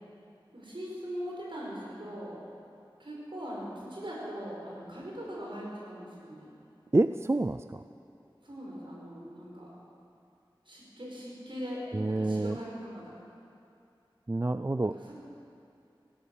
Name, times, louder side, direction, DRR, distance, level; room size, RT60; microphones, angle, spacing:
voice 1, 0.5-2.4 3.0-6.5 8.4-9.7 10.7-13.1 14.9-15.1, equal, 65° right, -5 dB, 5.3 m, -40 dB
voice 2, 6.9-7.8 11.9-12.6 14.3-14.9, right 2 dB, 30° right, 11 dB, 0.3 m, -27 dB
16.0 x 12.5 x 7.0 m, 2.6 s
wide cardioid pair, 40°, 9 cm